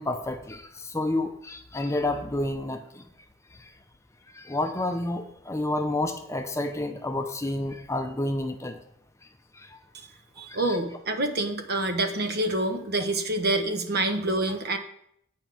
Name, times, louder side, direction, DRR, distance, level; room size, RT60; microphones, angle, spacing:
voice 1, 0.0-3.1 3.6-3.7 4.3-8.8 9.5-9.8 10.5-10.8, left 2 dB, 15° left, 7 dB, 0.7 m, -30 dB
voice 2, 10.4-14.8, right 2 dB, 50° right, 7 dB, 1.2 m, -27 dB
9.1 x 5.3 x 7.5 m, 0.72 s
head